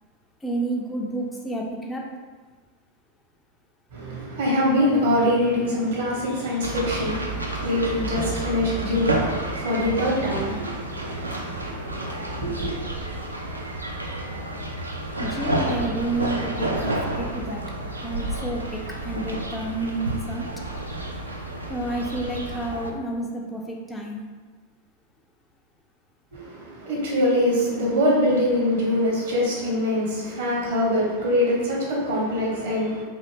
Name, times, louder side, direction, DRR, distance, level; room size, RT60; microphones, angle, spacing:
voice 1, 0.4-2.1 15.2-17.6 18.0-20.5 21.7-24.2, right 2 dB, 10° left, -1 dB, 0.3 m, -30 dB
voice 2, 3.9-12.7 26.3-33.0, left 1 dB, 60° right, -4 dB, 1.0 m, -24 dB
sound 1, 6.6-22.9, right 1 dB, 80° right, 0.4 m, -30 dB
2.6 x 2.5 x 3.2 m, 1.4 s
figure-of-eight pair, 90°, 0 cm